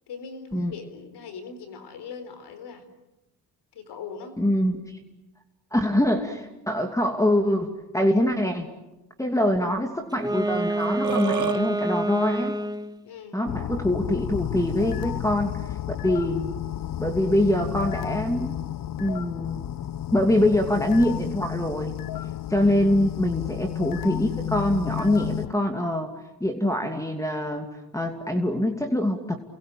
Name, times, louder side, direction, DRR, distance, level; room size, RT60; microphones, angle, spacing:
voice 1, 0.1-2.9 3.7-4.4 13.0-13.5 22.6-23.0, left 5 dB, 75° left, 10 dB, 4.1 m, -40 dB
voice 2, 4.4-4.8 5.7-8.7 9.2-12.6 13.3-15.5 16.0-16.5 17.0-18.6 19.0-19.6 20.1-21.9 22.5-26.1 26.4-29.4, left 1 dB, 10° left, 4 dB, 2.7 m, -24 dB
Wind instrument woodwind instrument, 10.1-13.0, right 1 dB, 10° right, 1.4 m, -27 dB
Burping eructation, 10.8-11.6, right 7 dB, 45° right, 1.7 m, -29 dB
sound 1, 13.5-25.5, left 12 dB, 55° left, 1.0 m, -32 dB
29.5 x 22.0 x 8.9 m, 1.0 s
supercardioid pair, 70°, 40 cm